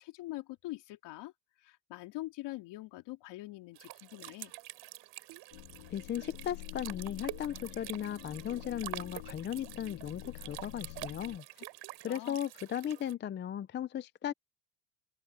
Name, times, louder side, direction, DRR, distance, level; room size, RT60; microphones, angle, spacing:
voice 1, 0.0-1.3 1.6-4.5 12.1-12.4, left 18 dB, 60° left, 3.0 m, -44 dB
sound 1, 3.8-13.1, right 18 dB, 60° right, 5.5 m, -47 dB
sound 2, 5.5-11.4, left 24 dB, 90° left, 1.5 m, -47 dB
voice 2, 5.9-11.4 12.0-14.3, left 10 dB, 25° left, 0.5 m, -37 dB
open air
cardioid pair, 125°, 46 cm